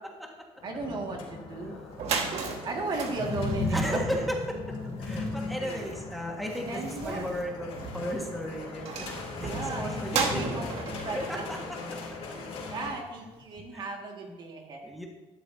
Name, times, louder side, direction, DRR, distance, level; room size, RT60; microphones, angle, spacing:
sound 1, 0.6-12.9, left 2 dB, 70° left, 3.1 m, -37 dB
voice 1, 0.6-1.8 2.7-4.2 5.6-5.9 6.6-7.3 9.5-10.6 11.0-11.4 12.3-14.9, right 3 dB, 45° right, 1 dB, 2.0 m, -35 dB
sound 2, 1.6-1.7 1.9-12.7, right 5 dB, 75° right, 1.7 m, -37 dB
voice 2, 3.7-10.6 11.1-11.8 13.2-13.3 13.6-13.9 14.3-14.4 14.8-15.1, equal, ahead, 0 dB, 1.7 m, -35 dB
12.5 x 12.0 x 2.8 m, 1.1 s
cardioid pair, 125°, 11 cm